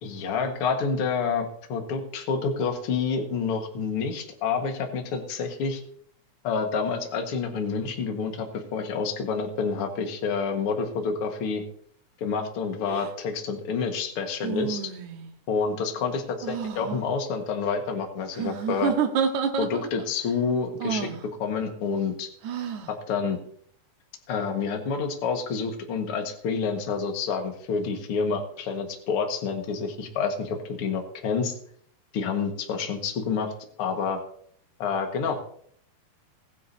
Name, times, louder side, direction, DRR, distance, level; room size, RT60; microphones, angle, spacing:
voice 1, 0.0-5.8 6.4-11.6 12.2-14.8 15.5-18.9 19.6-21.1 21.4-22.3 22.9-23.4 24.3-31.5 32.1-33.5 33.8-34.2 34.8-35.4, left 5 dB, 50° left, 3 dB, 2.3 m, -28 dB
sound 1, 12.9-13.1 14.4-15.3 16.4-17.0 18.3-20.1 20.8-21.2 22.4-22.9, right 7 dB, 75° right, 2.5 m, -29 dB
20.0 x 10.5 x 2.8 m, 0.62 s
omnidirectional pair, 3.5 m